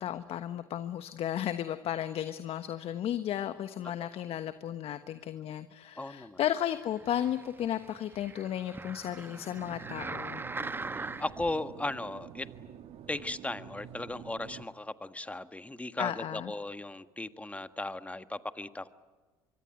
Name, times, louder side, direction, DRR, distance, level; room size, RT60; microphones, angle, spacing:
voice 1, 0.0-10.4 16.0-16.5, left 11 dB, 55° left, 11 dB, 1.2 m, -34 dB
voice 2, 6.0-6.4 11.0-12.5 13.1-18.9, left 2 dB, 10° left, 11 dB, 1.6 m, -37 dB
sound 1, 6.9-11.5 12.1-12.2, right 3 dB, 15° right, 1.2 m, -41 dB
sound 2, 9.6-14.7, right 9 dB, 55° right, 1.8 m, -48 dB
25.0 x 24.0 x 9.2 m, 1.4 s
hypercardioid pair, 70°, 12 cm